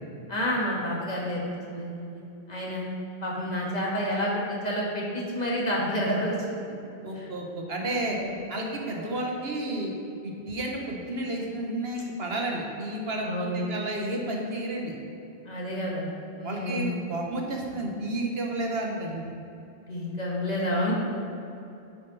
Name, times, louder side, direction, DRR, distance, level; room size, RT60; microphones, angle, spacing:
voice 1, 0.3-1.4 1.7-2.2 2.5-2.9 3.2-6.4 6.7-6.8 7.2-7.3 8.1-8.2 13.2-13.6 15.5-16.1 16.3-16.9 19.9-20.9, equal, 40° left, -4 dB, 1.9 m, -29 dB
voice 2, 7.0-8.2 8.5-9.9 10.2-14.9 16.4-19.2, right 1 dB, 75° right, 0 dB, 1.5 m, -31 dB
9.8 x 7.9 x 4.1 m, 2.7 s
omnidirectional pair, 1.0 m